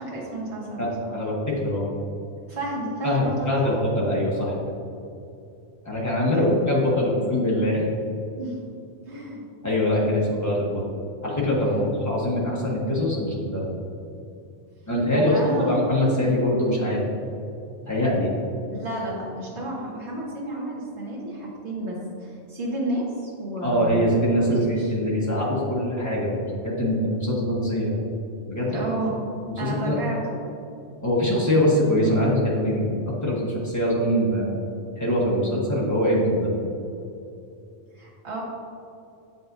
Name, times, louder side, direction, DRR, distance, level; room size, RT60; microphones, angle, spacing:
voice 1, 0.0-1.2 2.5-3.7 6.3-6.5 6.9-7.3 8.3-8.6 9.1-9.4 11.6-11.9 15.1-15.8 16.1-16.4 18.7-24.1 24.4-25.0 28.7-29.1 29.6-30.4 37.9-38.4, right 1 dB, 60° right, -5 dB, 1.7 m, -31 dB
voice 2, 0.8-1.8 3.0-4.6 5.8-7.9 9.6-10.8 11.2-13.7 14.9-17.0 17.9-18.3 23.6-28.0 28.5-28.8 29.6-30.0 31.0-34.6 35.0-36.5, left 1 dB, 15° left, -5 dB, 1.2 m, -23 dB
7.7 x 5.3 x 2.6 m, 2.6 s
omnidirectional pair, 1.3 m